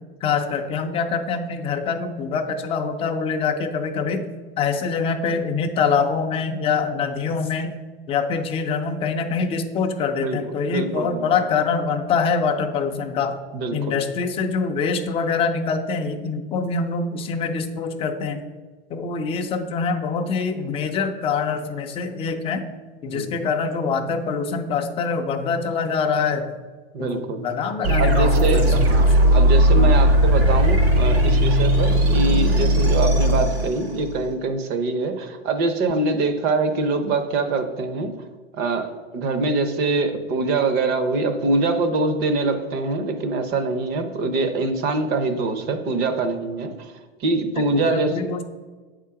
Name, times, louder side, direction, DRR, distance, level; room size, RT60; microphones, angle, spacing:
voice 1, 0.2-4.2 4.6-7.7 8.1-13.4 13.7-18.4 18.9-22.7 23.0-26.5 27.0-29.3 29.8-30.0 47.6-48.4, left 5 dB, 20° left, 5 dB, 0.5 m, -25 dB
voice 2, 10.7-11.3 13.5-14.0 23.1-23.4 26.9-27.4 28.0-38.1 38.5-46.9 47.2-48.2, right 3 dB, 30° right, 8 dB, 0.7 m, -24 dB
sound 1, 27.8-34.3, equal, 75° right, 2.3 m, -17 dB
7.9 x 3.7 x 5.7 m, 1.3 s
supercardioid pair, 145°, 31 cm